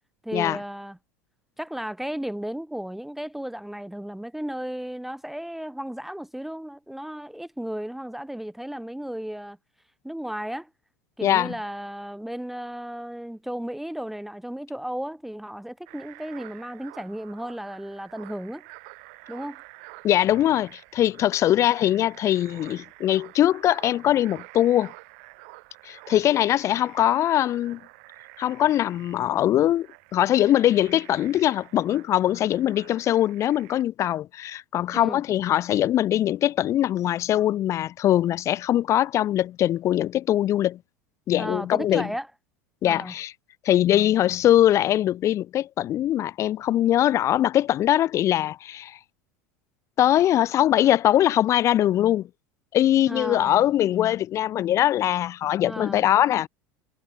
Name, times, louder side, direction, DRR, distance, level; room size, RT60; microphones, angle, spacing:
voice 1, 0.2-1.0 1.6-9.6 10.0-10.7 11.2-18.6 19.3-19.6 34.9-35.2 41.4-42.3 42.8-43.1 53.0-53.5 55.6-56.1, equal, 5° right, 0.7 m, -34 dB
voice 2, 11.2-11.5 20.0-24.9 25.8-27.8 28.4-29.9 30.1-40.8 41.3-42.1 42.8-43.3 43.6-49.0 50.0-52.3 52.7-56.5, left 12 dB, 45° left, 0.8 m, -22 dB
sound 1, 15.9-33.8, right 30 dB, 70° right, 2.6 m, -48 dB
hypercardioid pair, 85°, 7 cm